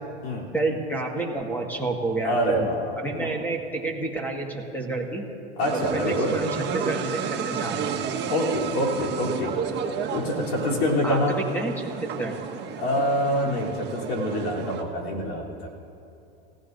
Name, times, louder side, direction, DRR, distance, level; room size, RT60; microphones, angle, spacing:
voice 1, 0.5-2.7 3.0-5.3 5.7-8.0 11.0-12.4, right 2 dB, 5° left, 1 dB, 1.7 m, -29 dB
voice 2, 2.2-3.3 5.6-6.4 8.3-9.6 10.1-11.4 12.8-15.7, equal, 85° left, -2 dB, 3.5 m, -26 dB
sound 1, 5.6-14.8, right 7 dB, 35° right, 1.5 m, -32 dB
29.5 x 16.0 x 2.7 m, 2.8 s
supercardioid pair, 120°, 31 cm